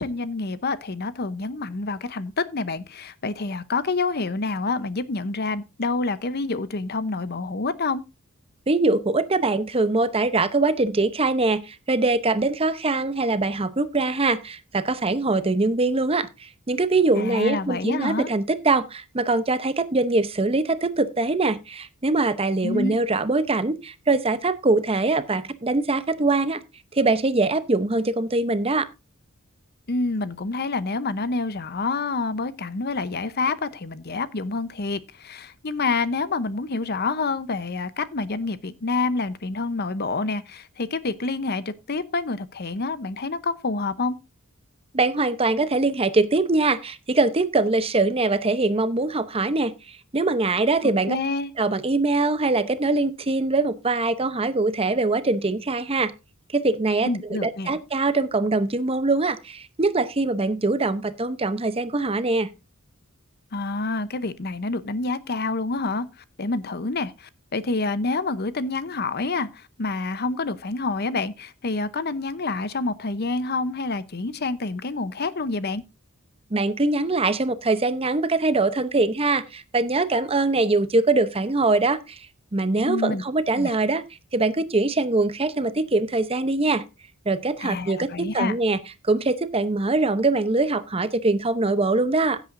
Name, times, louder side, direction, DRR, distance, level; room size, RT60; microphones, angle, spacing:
voice 1, 0.0-8.0 17.2-18.3 22.6-22.9 29.9-44.2 50.8-51.5 57.1-57.8 63.5-75.8 82.9-83.2 83.6-83.7 87.6-88.6, left 3 dB, 50° left, 0.8 m, -27 dB
voice 2, 8.7-26.6 26.9-28.9 44.9-51.2 51.6-56.1 56.5-62.5 76.5-82.3 82.5-84.0 84.3-86.8 87.3-88.8 89.0-92.4, right 3 dB, 25° right, 0.8 m, -23 dB
16.0 x 8.2 x 2.6 m
head